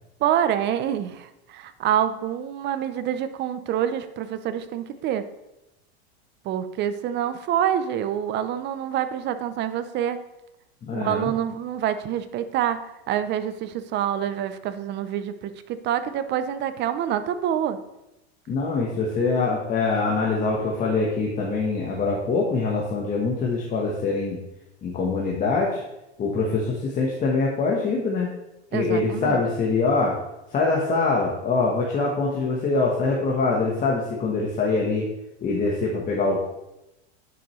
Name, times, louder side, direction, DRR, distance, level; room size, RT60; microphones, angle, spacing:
voice 1, 0.2-5.2 6.4-10.2 10.9-17.8 28.7-29.4, right 10 dB, 35° right, 11 dB, 0.6 m, -26 dB
voice 2, 10.8-11.3 18.5-24.4 24.8-25.8 26.2-28.3 28.7-30.2 30.5-35.0 35.4-36.4, left 3 dB, 25° left, -3 dB, 1.2 m, -24 dB
10.0 x 6.2 x 3.2 m, 0.91 s
supercardioid pair, 130°, 33 cm